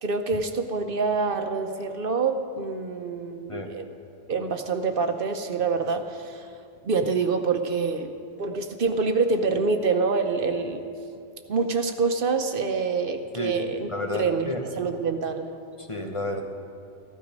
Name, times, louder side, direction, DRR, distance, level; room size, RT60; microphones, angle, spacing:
voice 1, 0.0-3.9 4.3-6.5 6.8-8.1 8.4-10.9 11.5-13.9 14.1-15.5, right 4 dB, 65° right, 7 dB, 0.9 m, -26 dB
voice 2, 13.3-14.6 15.8-16.4, left 1 dB, 30° left, 2 dB, 1.2 m, -31 dB
15.0 x 12.5 x 5.1 m, 2.5 s
omnidirectional pair, 1.0 m